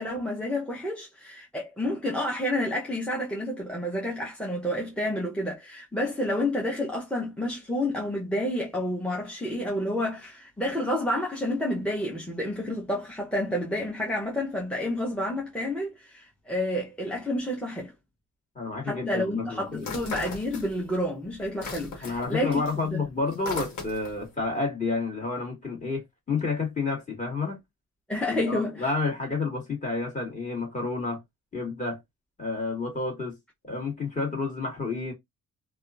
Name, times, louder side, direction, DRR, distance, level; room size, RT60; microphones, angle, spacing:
voice 1, 0.0-17.9 18.8-22.6 22.9-23.0 28.1-28.9, left 1 dB, 5° left, 0.8 m, -29 dB
voice 2, 18.5-20.1 22.0-27.6 28.2-31.2 31.5-32.0 32.4-33.4 33.6-35.1, left 3 dB, 25° left, 1.7 m, -30 dB
sound 1, 19.8-21.0 21.3-24.3, left 4 dB, 75° left, 1.3 m, -37 dB
2.8 x 2.3 x 2.4 m
cardioid pair, 90°, 30 cm